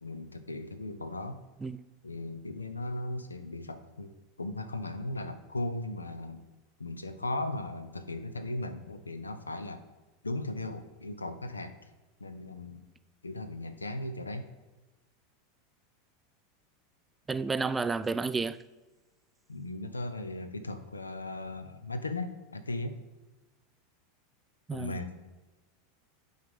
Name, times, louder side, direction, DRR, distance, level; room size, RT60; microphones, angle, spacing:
voice 1, 0.0-1.4 2.0-4.1 4.4-6.4 6.8-9.8 10.2-11.8 12.2-12.9 13.2-14.5 19.5-23.0 24.7-25.3, left 2 dB, 90° left, 0.6 m, -37 dB
voice 2, 17.3-18.6 24.7-24.9, right 4 dB, 15° right, 0.3 m, -31 dB
9.4 x 4.0 x 5.2 m
figure-of-eight pair, 85°, 0 cm